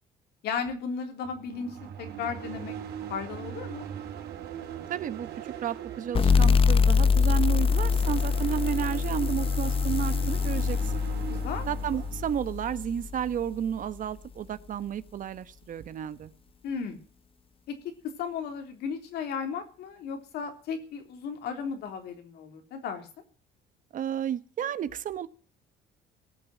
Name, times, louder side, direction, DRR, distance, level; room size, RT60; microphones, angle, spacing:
voice 1, 0.4-2.8 3.1-3.8 11.2-11.7 16.6-17.0 17.7-17.8 18.0-23.1, left 6 dB, 75° left, 5 dB, 3.5 m, -35 dB
sound 1, 1.2-12.3, right 9 dB, 75° right, 3.7 m, -40 dB
voice 2, 4.9-5.3 5.6-11.0 11.7-16.3 23.9-25.3, right 9 dB, 50° right, 14 dB, 1.0 m, -32 dB
sound 2, 6.1-13.4, left 5 dB, 35° left, 0.9 m, -24 dB
18.5 x 7.0 x 9.3 m, 0.40 s
cardioid pair, 110°, 17 cm